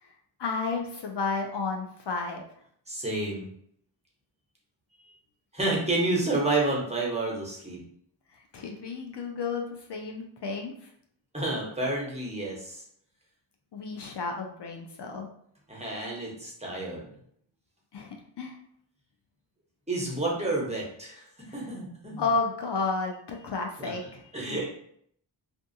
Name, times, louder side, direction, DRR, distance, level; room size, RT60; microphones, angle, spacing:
voice 1, 0.4-2.4 8.3-9.6 9.9-10.9 13.7-15.3 17.9-18.5 21.5-21.6 22.2-24.2, left 4 dB, 60° left, 2 dB, 0.5 m, -32 dB
voice 2, 2.9-3.5 5.0-5.1 5.5-7.8 11.3-12.8 15.7-17.1 19.9-21.2 21.5-22.2 23.8-23.9 24.3-24.6, right 2 dB, 15° right, -3 dB, 0.9 m, -29 dB
2.4 x 2.3 x 2.6 m, 0.67 s
cardioid pair, 45°, 48 cm